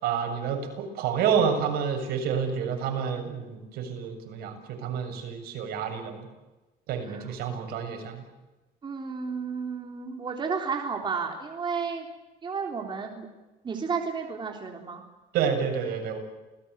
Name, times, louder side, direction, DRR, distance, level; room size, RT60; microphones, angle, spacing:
voice 1, 0.0-4.5 4.8-6.3 6.9-8.2 15.3-16.2, right 7 dB, 75° right, 4 dB, 7.3 m, -29 dB
voice 2, 8.8-12.1 12.4-13.3 13.6-15.0, right 5 dB, 30° right, 2 dB, 3.7 m, -32 dB
29.0 x 19.0 x 8.2 m, 1.1 s
cardioid pair, 120°, 16 cm